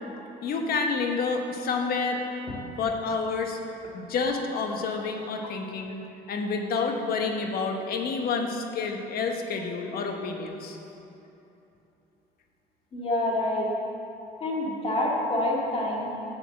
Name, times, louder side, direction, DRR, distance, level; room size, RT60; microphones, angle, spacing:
voice 1, 0.4-2.2 2.8-3.6 3.9-6.0 6.3-10.8, left 4 dB, 65° left, 4 dB, 1.1 m, -29 dB
voice 2, 12.9-13.7 14.4-16.3, left 1 dB, 35° left, -3 dB, 2.1 m, -27 dB
7.3 x 6.6 x 7.7 m, 2.9 s
cardioid pair, 110°, 17 cm